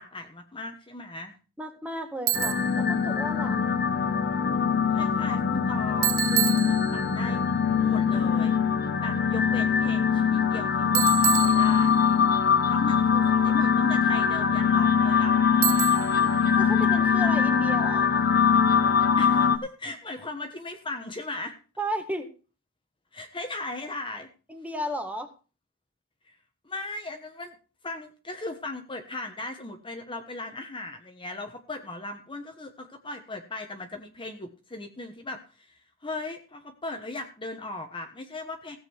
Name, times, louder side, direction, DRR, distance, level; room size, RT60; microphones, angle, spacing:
voice 1, 0.0-1.3 4.9-7.4 7.8-8.6 9.0-12.0 12.7-15.4 16.1-16.6 19.2-21.6 23.1-24.3 26.3-26.4 26.6-27.6 27.8-38.8, left 2 dB, 25° left, 5 dB, 1.2 m, -38 dB
voice 2, 1.6-3.6 16.6-18.1 21.8-22.3 24.5-25.3, equal, 5° right, 5 dB, 1.8 m, -34 dB
sound 1, 2.3-19.6, left 6 dB, 45° left, 1.0 m, -22 dB
Bicycle, 2.3-2.8 6.0-7.2 10.9-12.2 15.6-16.3, right 14 dB, 65° right, 0.6 m, -28 dB
16.5 x 7.7 x 4.7 m, 0.35 s
head